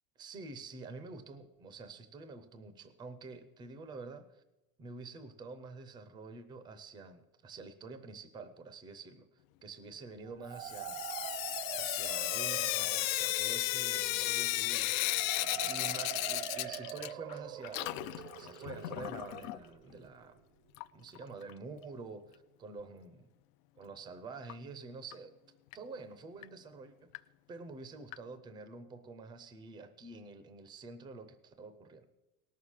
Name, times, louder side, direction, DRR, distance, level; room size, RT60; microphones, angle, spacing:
voice 1, 0.2-4.4 4.8-11.0 11.7-14.9 15.7-20.4 20.9-23.3 23.8-25.3 25.7-27.1 27.5-32.1, right 3 dB, 10° right, 10 dB, 0.5 m, -48 dB
sound 1, 10.2-20.1, right 13 dB, 65° right, 0.6 m, -44 dB
Sink (filling or washing) / Drip, 10.6-17.4 17.6-19.6 20.7-20.8 21.2-21.3 21.5-21.6 24.5-24.6 25.1-25.2 25.7-25.8 26.4-26.5 27.1-27.2 28.1-28.2, left 18 dB, 70° left, 0.5 m, -34 dB
18.5 x 6.4 x 7.3 m, 0.99 s
supercardioid pair, 165°, 42 cm